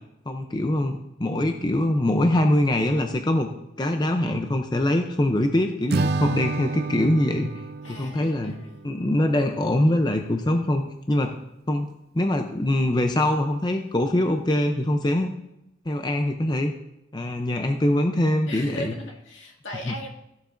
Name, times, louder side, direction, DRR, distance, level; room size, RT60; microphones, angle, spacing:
voice 1, 0.3-3.5 3.8-7.5 7.9-8.5 8.8-10.8 11.1-11.3 11.7-11.9 12.1-15.3 15.9-16.7 17.1-18.9 19.9-20.0, left 1 dB, 20° left, 5 dB, 0.5 m, -23 dB
Acoustic guitar / Strum, 5.9-9.2, right 3 dB, 55° right, 0.5 m, -29 dB
voice 2, 7.8-8.8 18.5-20.1, left 1 dB, 85° left, -1 dB, 2.0 m, -37 dB
14.5 x 7.2 x 2.6 m, 0.86 s
head